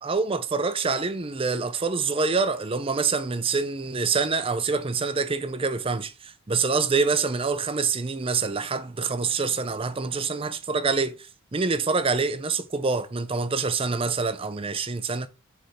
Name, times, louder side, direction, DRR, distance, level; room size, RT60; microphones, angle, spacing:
voice 1, 0.0-11.2 11.5-15.3, right 4 dB, 25° right, 0.5 m, -26 dB
6.4 x 3.5 x 4.2 m
head